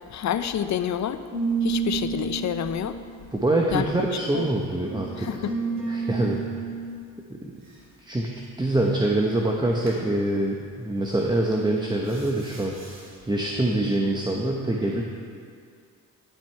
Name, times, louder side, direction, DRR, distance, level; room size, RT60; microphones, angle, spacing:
voice 1, 0.1-1.2 1.6-3.0 3.7-3.8 4.3-4.5 5.2-5.5, left 9 dB, 55° left, 11 dB, 0.6 m, -28 dB
sound 1, 1.3-4.1 4.8-6.9 9.8-10.1 11.2-11.5 12.0-13.1, right 5 dB, 50° right, 2.6 m, -31 dB
voice 2, 3.3-5.3 5.9-6.6 7.3-7.6 8.0-8.3 8.6-12.8 13.3-15.0, right 1 dB, 10° right, -1 dB, 0.8 m, -25 dB
10.5 x 6.1 x 4.5 m, 2.2 s
supercardioid pair, 65°, 34 cm